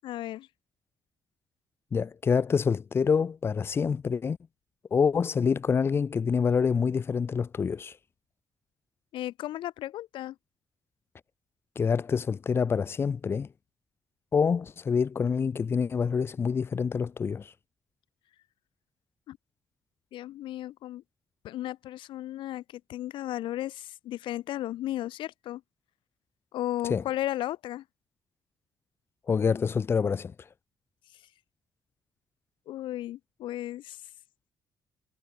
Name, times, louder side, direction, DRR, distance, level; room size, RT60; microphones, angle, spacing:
voice 1, 0.0-0.5 9.1-10.4 19.3-19.4 20.1-21.0 21.4-25.6 26.5-27.8 32.7-34.0, left 14 dB, 85° left, 7.3 m, -35 dB
voice 2, 1.9-4.4 4.9-8.0 11.7-13.5 14.3-17.5 26.9-27.0 29.3-30.3, left 6 dB, 30° left, 2.8 m, -26 dB
cardioid pair, 175°, 8 cm